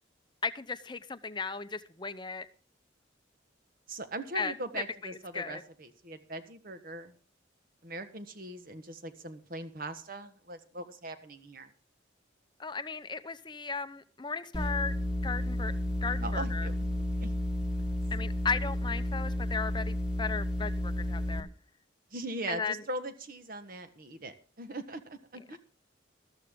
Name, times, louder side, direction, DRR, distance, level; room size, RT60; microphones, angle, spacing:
voice 1, 0.4-2.5 4.3-5.6 12.6-15.0 15.2-15.7 16.0-16.7 18.1-21.5 22.5-22.8 25.5-25.6, left 5 dB, 25° left, 0.7 m, -36 dB
voice 2, 3.9-7.1 7.8-11.7 16.2-17.3 22.1-25.6, right 2 dB, 50° right, 1.4 m, -40 dB
sound 1, 14.5-21.4, left 1 dB, 5° right, 1.9 m, -32 dB
13.5 x 13.5 x 3.7 m
head